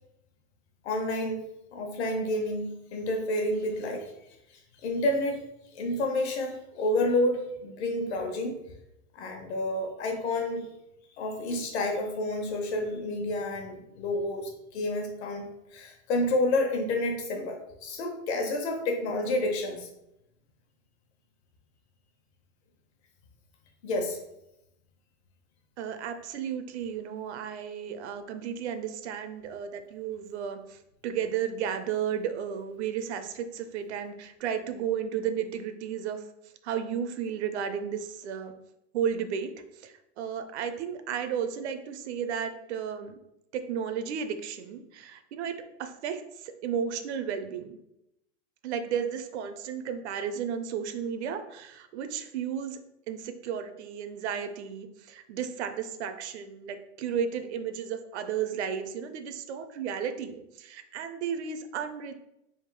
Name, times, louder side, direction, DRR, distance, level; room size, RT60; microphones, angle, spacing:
voice 1, 0.8-1.4 1.7-4.1 4.8-5.4 5.7-8.6 9.1-10.7 11.2-19.9 23.8-24.2, left 1 dB, 60° left, 3 dB, 1.1 m, -29 dB
voice 2, 25.8-30.6 31.0-36.2 36.6-38.5 38.9-39.5 39.8-43.2 43.5-47.8 48.6-52.8 53.1-62.1, right 8 dB, 65° right, 9 dB, 0.6 m, -33 dB
3.6 x 2.6 x 4.5 m, 0.84 s
supercardioid pair, 175°, 37 cm